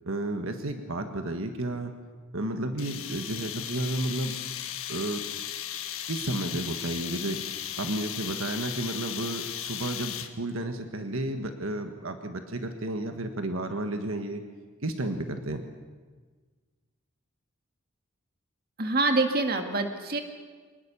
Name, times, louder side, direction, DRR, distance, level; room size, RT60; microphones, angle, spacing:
voice 1, 0.0-1.9 2.3-4.4 4.9-5.2 6.1-7.4 7.7-14.4 14.8-15.6, right 1 dB, 75° right, 6 dB, 1.5 m, -32 dB
sound 1, 2.8-10.5, left 10 dB, 85° left, 1.5 m, -36 dB
voice 2, 18.8-20.2, right 3 dB, 45° right, 5 dB, 2.0 m, -25 dB
24.0 x 20.0 x 7.0 m, 1.4 s
head